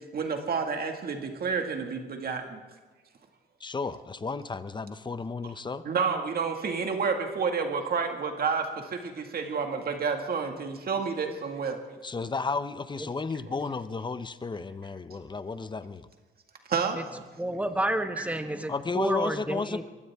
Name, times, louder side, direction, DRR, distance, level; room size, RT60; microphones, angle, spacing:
voice 1, 0.1-2.6 5.8-11.8 16.7-17.0 18.2-18.3, right 5 dB, 50° right, 4 dB, 2.1 m, -30 dB
voice 2, 3.6-5.9 12.0-16.1 18.7-19.8, left 4 dB, 25° left, 13 dB, 0.8 m, -33 dB
voice 3, 17.4-19.8, right 1 dB, 5° right, 7 dB, 1.3 m, -30 dB
23.0 x 16.0 x 3.6 m, 1.3 s
cardioid pair, 90°, 20 cm